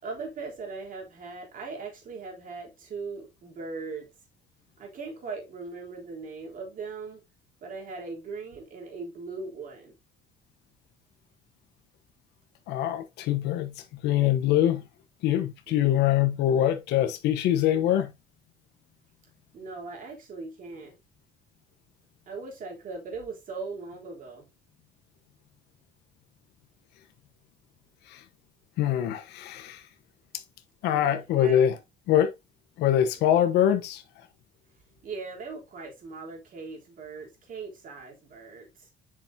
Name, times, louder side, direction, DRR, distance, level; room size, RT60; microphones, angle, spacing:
voice 1, 0.0-4.1 4.8-7.2 7.6-10.0 15.7-16.0 19.5-20.9 22.3-24.5 30.9-31.6 35.0-38.9, right 4 dB, 55° right, 3.6 m, -39 dB
voice 2, 12.7-14.8 15.2-18.1 28.1-28.2 28.8-29.8 30.8-31.7 32.1-32.3 32.8-34.0, left 11 dB, 85° left, 1.0 m, -24 dB
7.9 x 6.0 x 2.8 m
cardioid pair, 110°, 17 cm